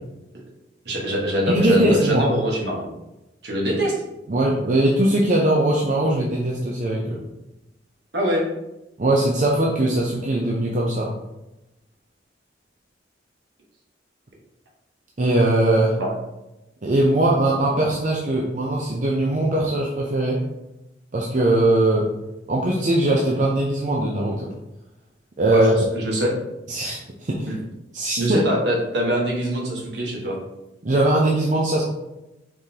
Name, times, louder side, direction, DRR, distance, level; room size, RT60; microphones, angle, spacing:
voice 1, 0.8-2.9 3.4-4.0 8.1-8.5 16.0-16.2 25.5-26.3 27.5-27.6 28.2-30.4, equal, 70° right, -2 dB, 1.3 m, -23 dB
voice 2, 1.5-2.3 4.3-7.2 9.0-11.1 15.2-16.0 16.8-20.4 21.1-22.1 22.5-24.5 25.4-25.7 26.7-27.5 27.9-28.4 30.8-31.8, right 1 dB, 45° right, -2 dB, 0.6 m, -20 dB
4.8 x 3.7 x 2.8 m, 0.95 s
head